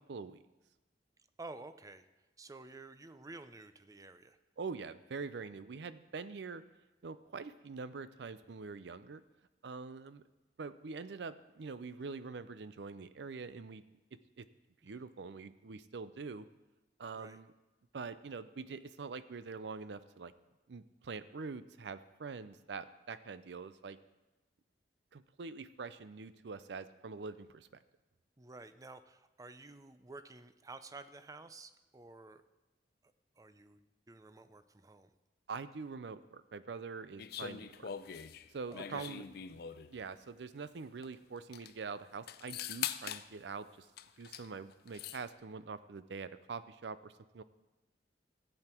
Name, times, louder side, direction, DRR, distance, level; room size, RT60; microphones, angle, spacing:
voice 1, 0.1-0.4 4.6-6.6 7.0-9.2 9.6-10.2 10.6-13.8 14.1-14.5 14.8-16.5 17.0-17.5 17.9-20.3 20.7-24.0 25.1-27.7 35.5-37.9 38.5-39.2 39.5-39.6 39.9-43.9 44.2-47.4, right 4 dB, 70° right, 14 dB, 0.5 m, -44 dB
voice 2, 1.4-2.0 2.4-4.4 14.8-14.9 17.2-17.4 28.4-32.4 33.4-35.1 38.7-39.1, right 3 dB, 20° right, 12 dB, 0.5 m, -51 dB
sound 1, 37.2-40.0 41.0-41.1 41.4-41.7 42.3-43.3 44.0-44.5 44.7-45.2, left 9 dB, 60° left, 0.5 m, -42 dB
14.0 x 8.0 x 4.4 m, 1.1 s
head